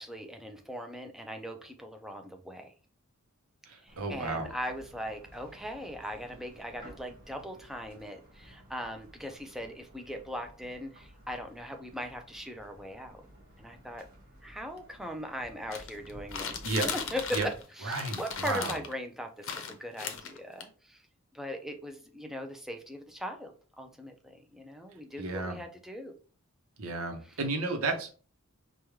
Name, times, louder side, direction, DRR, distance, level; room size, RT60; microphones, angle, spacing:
voice 1, 0.0-2.7 3.8-13.2 13.6-14.1 14.4-21.0 21.3-26.1, equal, ahead, 4 dB, 0.4 m, -40 dB
voice 2, 3.7-4.5 16.6-16.9 17.3-17.5 17.8-18.8 25.2-25.6 26.8-28.1, right 3 dB, 80° right, 5 dB, 0.8 m, -32 dB
sound 1, 3.9-17.6, equal, 45° right, 1.7 m, -54 dB
sound 2, 15.7-17.6 17.9-18.9 19.4-20.6, left 6 dB, 65° left, 0.6 m, -37 dB
4.8 x 2.3 x 3.1 m, 0.39 s
head